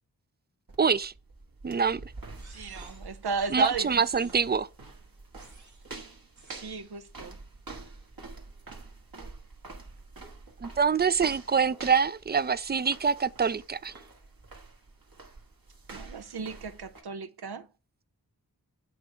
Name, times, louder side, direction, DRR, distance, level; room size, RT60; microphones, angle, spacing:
sound 1, 0.7-17.0, right 3 dB, 65° right, 1.9 m, -47 dB
voice 1, 0.8-1.1 1.6-2.0 3.5-4.7 10.6-13.9, right 6 dB, 25° right, 0.4 m, -25 dB
sound 2, 2.4-3.2 3.9-4.6 5.4-5.9 6.4-6.7, right 2 dB, 50° right, 2.3 m, -55 dB
voice 2, 2.5-3.9 4.1-4.3 6.5-7.4 15.9-17.7, right 5 dB, 85° right, 0.8 m, -35 dB
7.9 x 3.5 x 5.0 m
cardioid pair, 45°, 38 cm